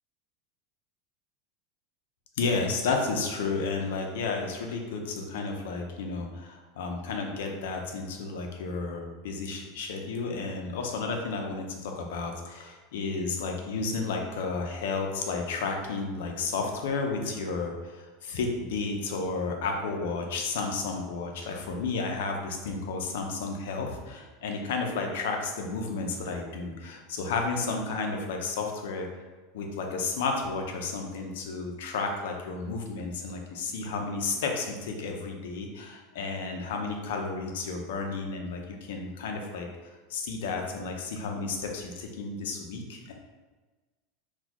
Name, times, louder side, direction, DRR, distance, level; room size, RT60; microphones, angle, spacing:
voice 1, 2.4-29.1 29.5-39.7 40.1-43.1, left 4 dB, 85° left, 2 dB, 0.6 m, -32 dB
3.9 x 2.3 x 2.9 m, 1.3 s
supercardioid pair, 165°, 0 cm